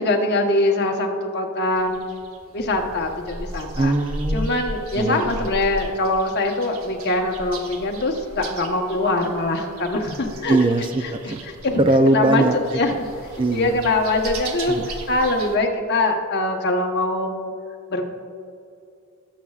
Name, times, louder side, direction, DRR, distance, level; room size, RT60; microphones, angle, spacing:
voice 1, 0.0-2.0 2.5-3.9 4.3-10.6 11.6-11.8 12.1-12.4 12.7-13.1 13.5-17.5 17.9-18.1, left 2 dB, 50° left, 2 dB, 1.1 m, -23 dB
sound 1, 1.7-15.6, right 1 dB, 70° right, 1.0 m, -36 dB
voice 2, 3.8-4.5 4.9-5.5 10.5-11.4 11.8-12.8 13.4-13.9 14.7-14.9, right 2 dB, 25° right, 8 dB, 0.4 m, -21 dB
19.0 x 7.4 x 2.4 m, 2.5 s
head